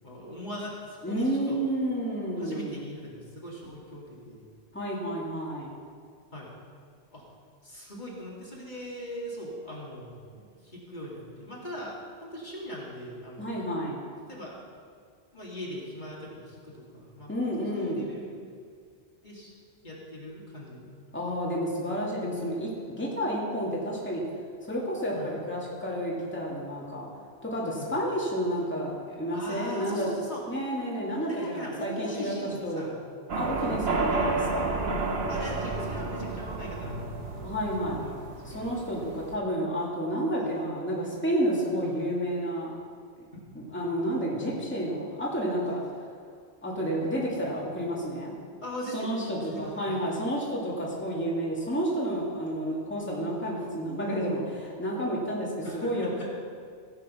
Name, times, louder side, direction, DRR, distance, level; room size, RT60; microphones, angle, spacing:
voice 1, 0.0-1.6 2.4-4.5 6.3-6.5 7.1-7.3 7.6-13.4 14.3-14.6 15.3-18.4 19.2-19.5 19.8-20.9 25.1-25.4 27.8-27.9 29.3-30.4 31.3-33.0 33.6-33.7 34.1-34.4 35.3-37.5 38.0-38.2 38.4-38.7 40.4-40.5 43.3-43.6 48.6-50.0 53.0-53.2 55.6-56.4, equal, 40° left, -5 dB, 2.5 m, -40 dB
voice 2, 1.0-2.8 4.7-5.7 13.4-14.0 17.3-18.1 21.1-24.2 24.6-27.1 27.4-30.1 30.5-32.3 32.6-32.9 33.3-34.7 37.4-38.1 38.4-42.7 43.5-45.8 46.6-48.3 48.9-55.5 55.7-56.1, equal, 10° left, -5 dB, 2.4 m, -30 dB
sound 1, 33.3-39.4, right 3 dB, 65° right, 1.3 m, -31 dB
16.0 x 8.7 x 5.6 m, 2.1 s
omnidirectional pair, 1.2 m